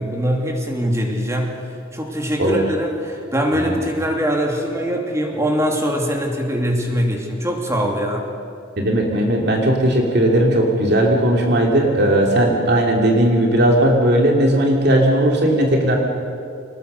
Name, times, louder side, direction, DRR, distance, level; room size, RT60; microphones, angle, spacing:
voice 1, 0.0-1.6 1.9-8.3, equal, 15° right, 1 dB, 2.8 m, -22 dB
voice 2, 8.8-16.0, right 1 dB, 55° right, 0 dB, 2.7 m, -17 dB
24.0 x 20.0 x 6.7 m, 2.5 s
head